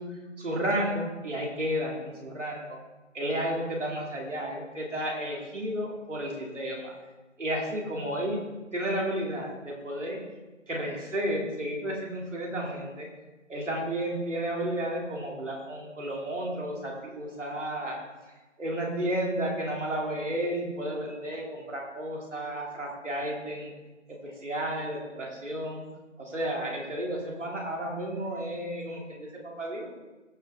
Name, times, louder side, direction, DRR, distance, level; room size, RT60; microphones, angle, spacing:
voice 1, 0.0-2.8 3.1-6.9 7.4-8.4 8.7-10.2 10.7-13.1 13.5-18.0 18.6-23.7 24.2-25.8 26.2-29.9, right 1 dB, 70° right, -2 dB, 3.0 m, -32 dB
15.0 x 5.8 x 3.8 m, 1.2 s
figure-of-eight pair, 170°, 38 cm